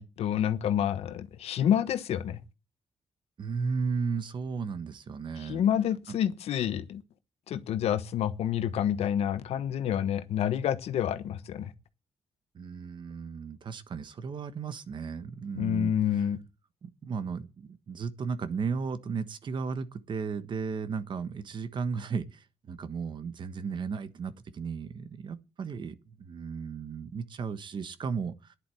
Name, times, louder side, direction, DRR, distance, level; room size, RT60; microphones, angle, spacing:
voice 1, 0.0-2.4 5.4-7.0 7.5-11.7 15.6-16.4, left 10 dB, 85° left, 1.2 m, -28 dB
voice 2, 3.4-5.6 12.5-15.9 16.8-28.6, right 5 dB, 50° right, 1.3 m, -35 dB
10.5 x 8.1 x 7.8 m
cardioid pair, 120°, 10 cm